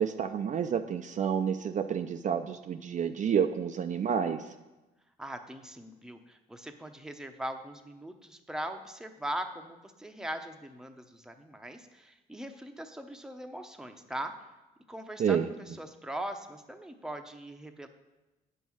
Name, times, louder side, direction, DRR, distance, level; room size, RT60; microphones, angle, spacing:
voice 1, 0.0-4.4 15.2-15.5, right 7 dB, 45° right, 7 dB, 0.5 m, -29 dB
voice 2, 5.2-14.4 14.9-17.9, right 1 dB, 5° right, 6 dB, 0.8 m, -40 dB
8.4 x 5.5 x 6.2 m, 1.1 s
cardioid pair, 90°, 18 cm